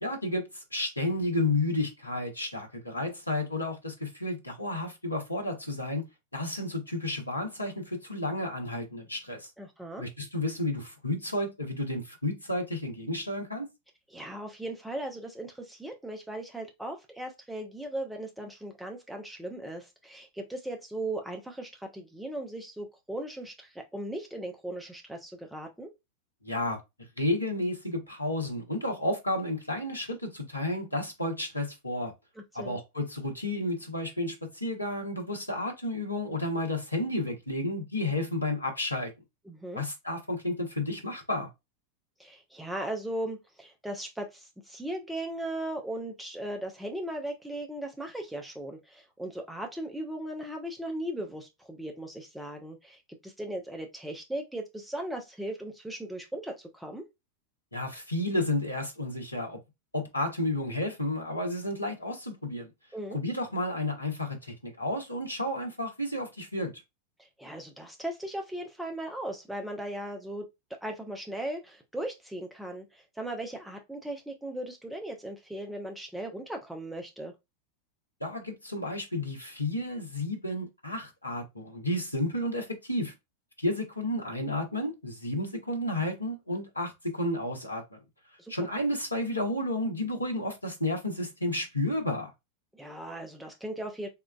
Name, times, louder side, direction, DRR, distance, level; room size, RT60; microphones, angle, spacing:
voice 1, 0.0-6.0 6.3-9.5 10.0-13.7 26.4-26.8 27.2-32.1 32.5-39.1 39.7-41.5 57.7-59.6 59.9-62.7 63.1-66.7 78.2-83.1 83.6-88.0 88.5-92.3, left 1 dB, 85° left, 0.8 m, -31 dB
voice 2, 9.6-10.0 14.1-25.9 32.4-32.8 39.5-39.8 42.2-57.0 62.9-63.2 67.2-77.3 88.4-88.5 92.7-94.1, right 1 dB, 5° right, 0.6 m, -38 dB
3.7 x 2.2 x 2.3 m
figure-of-eight pair, 90°, 0 cm